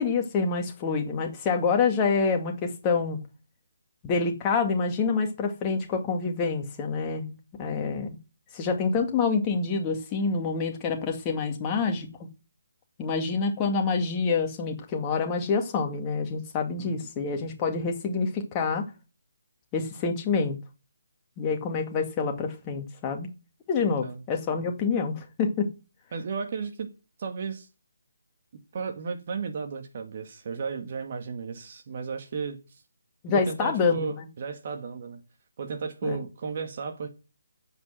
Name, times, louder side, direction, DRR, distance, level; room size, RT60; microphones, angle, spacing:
voice 1, 0.0-3.2 4.0-8.2 8.5-12.1 13.0-18.9 19.7-20.6 21.4-23.3 23.7-25.7 33.2-34.3 36.0-36.2, left 5 dB, 20° left, 2.1 m, -27 dB
voice 2, 23.8-24.2 26.1-26.9 27.2-27.7 28.7-32.6 33.3-35.2 35.6-37.1, right 5 dB, 40° right, 1.9 m, -34 dB
9.9 x 8.1 x 7.7 m
figure-of-eight pair, 145°, 0 cm